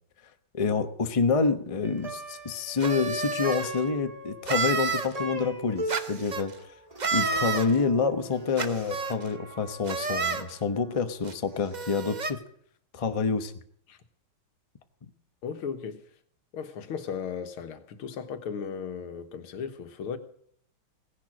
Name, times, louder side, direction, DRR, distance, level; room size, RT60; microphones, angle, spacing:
voice 1, 0.5-6.7 7.1-12.4 12.9-13.5, left 5 dB, 30° left, 0.6 m, -27 dB
Plucked string instrument, 1.8-11.3, right 1 dB, 15° right, 2.0 m, -40 dB
sound 1, 2.8-3.7 4.5-5.1 5.9-6.4 7.0-7.7 8.6-9.2 9.9-10.4 11.2-11.3 11.7-12.3, right 5 dB, 50° right, 0.5 m, -29 dB
voice 2, 15.4-16.0 16.5-20.2, left 6 dB, 80° left, 2.1 m, -36 dB
17.0 x 10.5 x 6.3 m
omnidirectional pair, 2.3 m